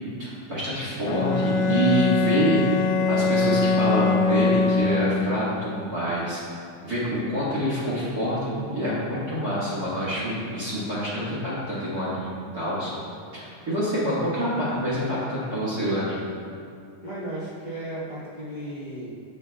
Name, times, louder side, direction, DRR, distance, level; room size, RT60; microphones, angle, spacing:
voice 1, 0.2-6.4 6.8-12.9 13.3-16.3, equal, 35° right, -10 dB, 1.9 m, -26 dB
Bowed string instrument, 1.1-5.5, left 3 dB, 90° left, 2.3 m, -22 dB
voice 2, 17.0-19.1, right 1 dB, 55° right, -11 dB, 0.4 m, -35 dB
15.5 x 6.9 x 2.4 m, 2.4 s
omnidirectional pair, 3.8 m